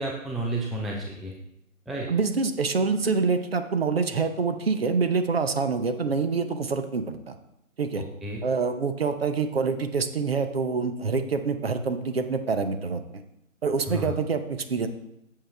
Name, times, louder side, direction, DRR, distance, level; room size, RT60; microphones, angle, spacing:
voice 1, 0.0-1.3 1.9-2.1 8.0-8.4 13.9-14.2, right 1 dB, ahead, -2 dB, 0.4 m, -31 dB
voice 2, 2.1-7.3 7.8-8.0 8.4-13.0 13.6-14.9, right 4 dB, 45° right, 8 dB, 0.8 m, -26 dB
8.7 x 6.7 x 3.4 m, 0.82 s
figure-of-eight pair, 155°, 42 cm